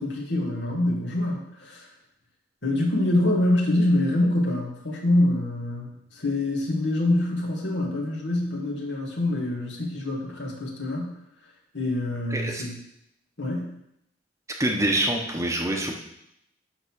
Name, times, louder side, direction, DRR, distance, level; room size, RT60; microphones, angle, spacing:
voice 1, 0.0-1.8 2.6-5.9 6.1-11.1 11.7-12.7 13.4-13.7, left 1 dB, 75° left, -1 dB, 2.3 m, -25 dB
voice 2, 12.3-12.6 14.6-16.0, right 1 dB, 15° right, 1 dB, 1.0 m, -25 dB
11.0 x 3.9 x 6.4 m, 0.78 s
head